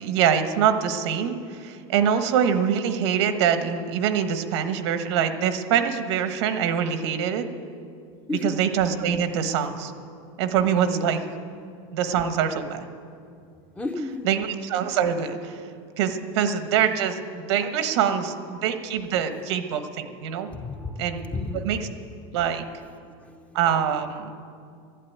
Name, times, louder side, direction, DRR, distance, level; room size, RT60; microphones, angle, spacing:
voice 1, 0.0-7.4 8.4-9.9 10.4-11.2 11.9-12.9 14.2-15.7 16.0-20.5 21.0-21.2 21.5-21.9 22.3-22.6 23.5-24.3, right 8 dB, 85° right, 8 dB, 1.3 m, -24 dB
voice 2, 8.3-8.6 10.7-11.2 13.8-14.3 20.5-21.7 23.2-23.5, left 2 dB, 10° left, 6 dB, 0.7 m, -32 dB
12.0 x 11.5 x 9.4 m, 2.4 s
supercardioid pair, 160°, 14 cm